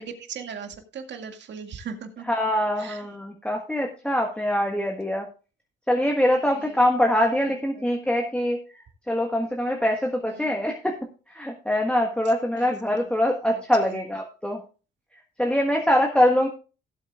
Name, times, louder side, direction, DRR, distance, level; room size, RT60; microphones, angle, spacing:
voice 1, 0.0-2.3 2.8-3.1 6.4-6.8 7.4-7.9 10.3-10.6 12.6-12.7 13.0-13.1 13.5-14.0, right 6 dB, 65° right, 6 dB, 2.0 m, -39 dB
voice 2, 2.3-5.3 5.9-10.9 11.3-14.6 15.4-16.5, left 1 dB, 5° left, 1 dB, 1.5 m, -23 dB
17.0 x 7.9 x 2.4 m, 0.34 s
cardioid pair, 90°, 20 cm